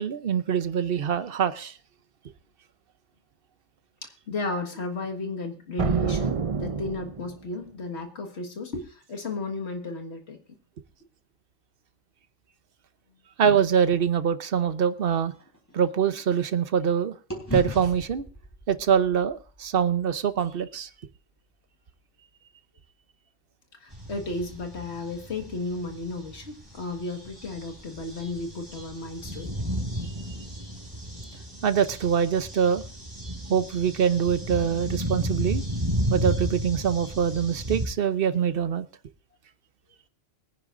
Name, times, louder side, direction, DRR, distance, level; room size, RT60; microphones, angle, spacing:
voice 1, 0.0-1.7 13.4-15.3 15.7-17.1 17.5-18.2 18.7-20.9 31.6-32.8 33.5-35.6 36.1-38.9, right 7 dB, 55° right, 12 dB, 0.9 m, -24 dB
voice 2, 4.0-10.4 23.8-29.6, left 3 dB, 70° left, 3 dB, 2.0 m, -34 dB
sound 1, 5.8-7.5, right 6 dB, 35° right, 0.6 m, -28 dB
sound 2, 14.6-16.9 17.3-21.5, equal, 15° left, 3.7 m, -39 dB
sound 3, 23.9-37.9, equal, 20° right, 3.5 m, -33 dB
22.5 x 9.9 x 2.6 m, 0.36 s
omnidirectional pair, 1.2 m